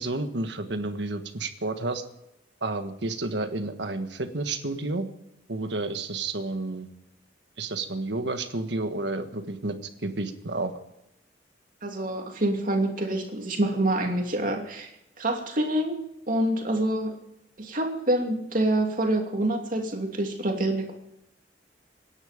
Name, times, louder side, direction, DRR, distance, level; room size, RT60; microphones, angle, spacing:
voice 1, 0.0-2.0 2.6-5.1 5.5-6.9 7.6-9.8 10.0-10.7, right 2 dB, 75° right, 8 dB, 1.5 m, -30 dB
voice 2, 11.8-16.0 16.3-17.1 17.6-20.9, right 1 dB, 50° right, 2 dB, 2.7 m, -26 dB
25.0 x 10.5 x 5.1 m, 0.85 s
head